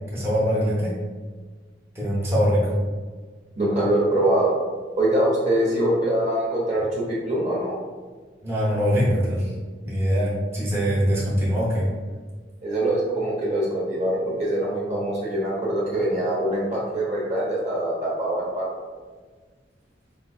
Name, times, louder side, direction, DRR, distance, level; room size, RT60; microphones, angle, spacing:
voice 1, 0.1-1.0 1.9-2.7 8.4-9.5 9.8-11.9, equal, 15° right, -7 dB, 0.8 m, -22 dB
voice 2, 3.6-4.6 5.0-7.8 12.6-18.7, right 1 dB, 40° right, -4 dB, 0.8 m, -23 dB
4.4 x 2.6 x 2.3 m, 1.4 s
head